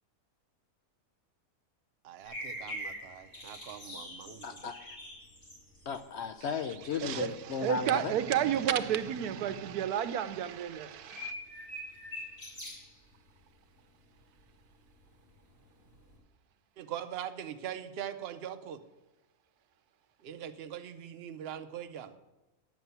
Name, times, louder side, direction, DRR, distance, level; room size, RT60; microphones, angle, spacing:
voice 1, 2.0-4.7 16.8-18.8 20.2-22.1, right 10 dB, 55° right, 0.7 m, -42 dB
sound 1, 2.2-6.4 6.9-7.0 7.4-7.8 8.3-8.8 9.3-9.4 9.6-9.7 10.8-13.0 14.8-16.2, left 1 dB, 35° left, 3.4 m, -43 dB
voice 2, 4.4-5.0 5.9-8.1, left 6 dB, 70° left, 0.6 m, -35 dB
voice 3, 7.0-11.3, right 10 dB, 80° right, 1.2 m, -31 dB
9.3 x 7.3 x 6.8 m
omnidirectional pair, 1.6 m